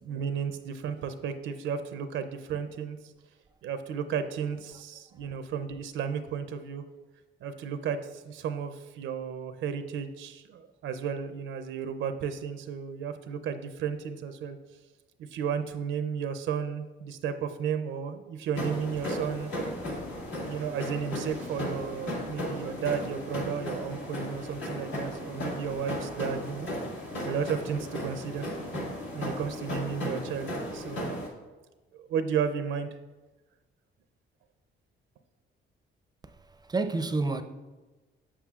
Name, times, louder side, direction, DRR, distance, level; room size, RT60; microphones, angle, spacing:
voice 1, 0.0-3.0 3.6-6.8 7.4-14.6 15.3-19.5 20.4-26.7 27.1-28.5 29.1-31.1 31.9-32.9, right 7 dB, 80° right, 0.5 m, -33 dB
sound 1, 18.5-31.3, left 1 dB, 70° left, 1.7 m, -35 dB
voice 2, 36.6-37.4, right 3 dB, 20° right, 0.4 m, -30 dB
7.2 x 6.9 x 2.4 m
cardioid pair, 90°, 20 cm